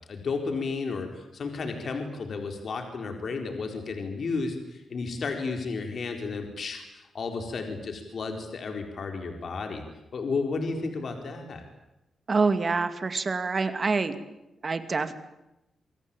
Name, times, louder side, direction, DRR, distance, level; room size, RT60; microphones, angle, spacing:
voice 1, 0.1-9.8 10.1-11.6, left 4 dB, 50° left, 4 dB, 4.4 m, -33 dB
voice 2, 12.3-14.2 14.6-15.2, right 4 dB, 35° right, 10 dB, 2.4 m, -26 dB
28.0 x 23.0 x 9.0 m, 0.91 s
wide cardioid pair, 135°, 0 cm